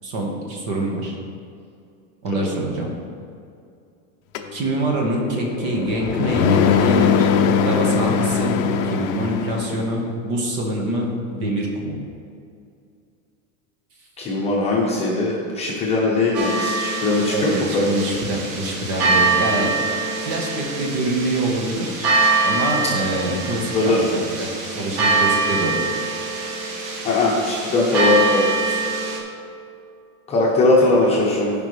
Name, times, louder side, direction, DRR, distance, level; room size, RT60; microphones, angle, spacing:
voice 1, 0.0-1.2 2.2-2.9 4.5-7.3 7.6-8.6 8.8-12.0 17.3-19.7 20.2-22.1 22.4-24.5 24.7-25.7, right 1 dB, 40° right, 0 dB, 1.5 m, -25 dB
sound 1, 4.4-9.9, left 6 dB, 50° left, 0.6 m, -21 dB
voice 2, 14.2-18.2 23.7-24.1 27.0-28.8 30.3-31.5, left 2 dB, 15° left, -5 dB, 1.0 m, -20 dB
sound 2, 16.3-29.2, right 3 dB, 65° right, 1.8 m, -24 dB
15.0 x 5.4 x 3.4 m, 2.4 s
supercardioid pair, 175°, 43 cm